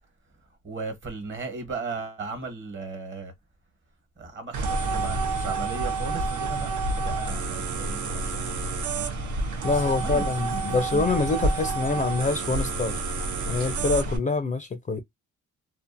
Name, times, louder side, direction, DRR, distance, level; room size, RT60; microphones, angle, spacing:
voice 1, 0.6-3.3 4.2-8.5 9.7-11.1, right 4 dB, 40° right, 1.2 m, -36 dB
sound 1, 4.5-14.2, right 3 dB, 75° right, 0.8 m, -29 dB
voice 2, 9.6-13.0 13.5-15.0, left 3 dB, 25° left, 0.4 m, -26 dB
2.6 x 2.4 x 2.5 m
cardioid pair, 90°, 30 cm